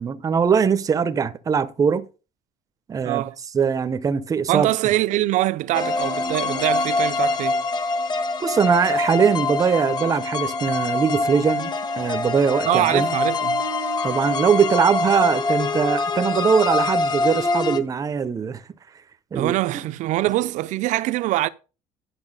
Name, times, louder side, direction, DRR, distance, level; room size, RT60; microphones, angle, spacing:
voice 1, 0.0-2.1 2.9-3.3 3.5-4.8 8.4-13.1 14.0-18.6 19.3-19.5, right 6 dB, 25° right, 0.7 m, -21 dB
voice 2, 3.0-3.4 4.5-7.6 12.7-13.6 19.3-21.5, right 16 dB, 65° right, 0.6 m, -23 dB
sound 1, 5.7-17.8, left 3 dB, 30° left, 1.3 m, -24 dB
11.0 x 5.7 x 5.4 m
cardioid pair, 135°, 13 cm